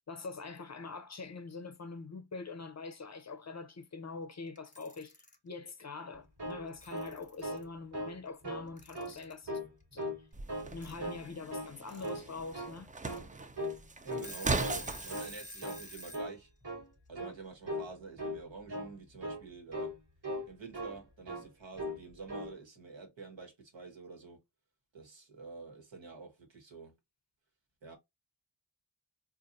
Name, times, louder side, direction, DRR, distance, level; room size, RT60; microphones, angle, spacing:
voice 1, 0.0-5.1 5.4-9.6 9.9-10.2 10.7-12.9, left 4 dB, 40° left, 0.5 m, -44 dB
Alarm / Clock, 4.6-5.4 6.5-6.6 6.8-7.6 8.8-9.4 10.8-10.9 11.7-12.1 12.5-12.6 13.0-13.2 13.7-13.8 14.1-16.2, equal, 15° left, 0.8 m, -48 dB
sound 1, 6.1-7.7 7.9-8.2 8.4-9.1 9.5-10.2 10.5-11.2 11.5-11.7 12.0-12.8 13.0-13.3 13.6-13.8 14.1-14.8 15.1-15.3 15.6-15.9 16.1-16.4 16.6-16.9 17.2-17.4 17.7-17.9 18.2-18.4 18.7-18.9 19.2-19.4 19.7-20.0 20.2-21.0 21.3-21.5 21.8-22.0 22.3-22.5, equal, 60° right, 1.4 m, -39 dB
sound 2, 10.3-15.3, right 3 dB, 20° right, 0.3 m, -38 dB
voice 2, 14.0-16.5 17.1-19.9 20.5-24.4 24.9-26.9 27.8-28.0, right 4 dB, 85° right, 1.3 m, -48 dB
3.9 x 2.5 x 2.6 m
wide cardioid pair, 90°, 44 cm